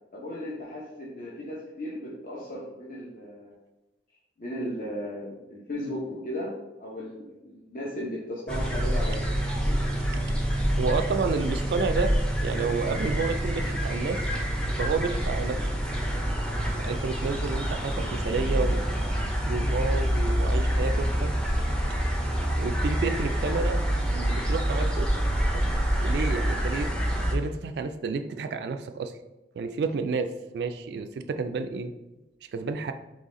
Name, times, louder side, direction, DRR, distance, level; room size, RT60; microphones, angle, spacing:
voice 1, 0.1-3.6 4.4-6.5 6.8-9.8, equal, 50° left, -5 dB, 0.8 m, -36 dB
sound 1, 8.5-27.3, equal, 5° left, 0.5 m, -27 dB
voice 2, 10.8-12.1 12.4-14.2 14.6-15.7 16.8-18.8 19.5-21.3 22.6-23.8 24.1-25.1 25.5-25.7 26.0-26.9 27.3-29.1 29.6-31.9 32.5-32.9, right 4 dB, 65° right, 8 dB, 0.3 m, -30 dB
4.0 x 3.2 x 3.7 m, 1.0 s
head